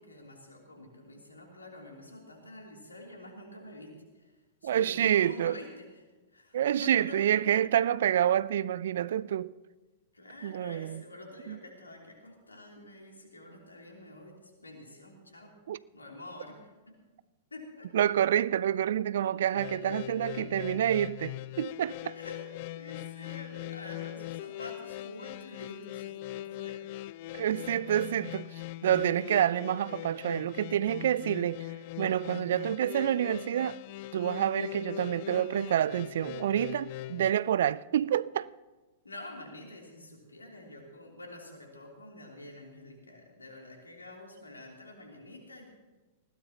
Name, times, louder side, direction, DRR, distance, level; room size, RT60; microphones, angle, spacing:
voice 1, 0.0-4.3 4.6-7.2 7.6-7.7 10.1-15.5 15.9-16.7 17.5-17.9 19.8-20.8 22.1-22.4 22.7-26.8 27.4-27.8 39.0-45.7, left 1 dB, 90° left, 3.2 m, -47 dB
voice 2, 4.6-5.6 6.5-9.5 10.4-11.0 11.5-11.6 15.7-15.8 17.9-22.2 27.3-31.7 32.0-33.8 34.1-38.5, right 10 dB, 65° right, 0.4 m, -28 dB
sound 1, 19.5-37.3, left 15 dB, 50° left, 0.4 m, -41 dB
20.0 x 16.5 x 2.9 m
figure-of-eight pair, 100°, 0 cm